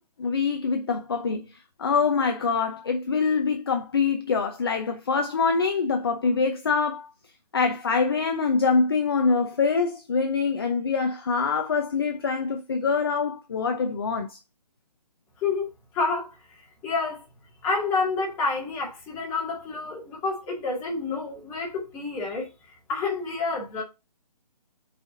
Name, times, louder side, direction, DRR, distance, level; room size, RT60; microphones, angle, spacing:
voice 1, 0.2-1.5 1.8-7.1 7.5-14.4, left 5 dB, 35° left, 0.7 m, -24 dB
voice 2, 15.9-16.4 16.8-17.2 17.6-22.5 22.9-23.8, left 4 dB, 10° left, 2.1 m, -28 dB
8.6 x 5.0 x 2.7 m
hypercardioid pair, 170°, 21 cm